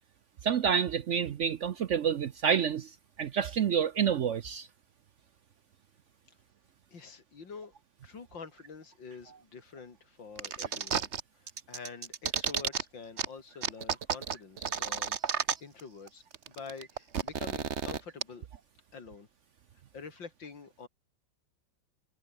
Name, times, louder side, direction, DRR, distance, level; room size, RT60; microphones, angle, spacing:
voice 1, 0.4-2.9 3.2-4.7, right 7 dB, 70° right, 0.7 m, -28 dB
voice 2, 6.9-7.7 8.0-11.1 11.4-18.5 18.9-19.3 19.9-20.9, left 5 dB, 70° left, 3.9 m, -47 dB
sound 1, 10.4-11.2 11.5-12.8 13.2-13.3 13.6-15.8 16.1-16.2 16.3-18.2, right 7 dB, 40° right, 1.2 m, -32 dB
omnidirectional pair, 2.1 m